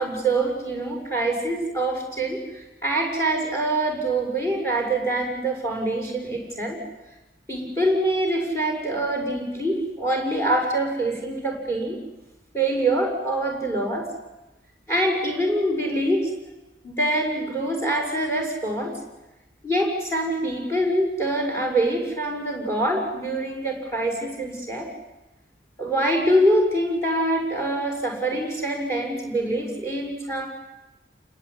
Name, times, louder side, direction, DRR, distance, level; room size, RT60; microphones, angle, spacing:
voice 1, 0.0-6.8 7.5-12.0 12.5-14.1 14.9-16.3 16.8-18.9 19.6-24.9 25.8-30.5, right 1 dB, 15° left, 1 dB, 6.9 m, -24 dB
29.0 x 20.5 x 9.9 m, 1.0 s
head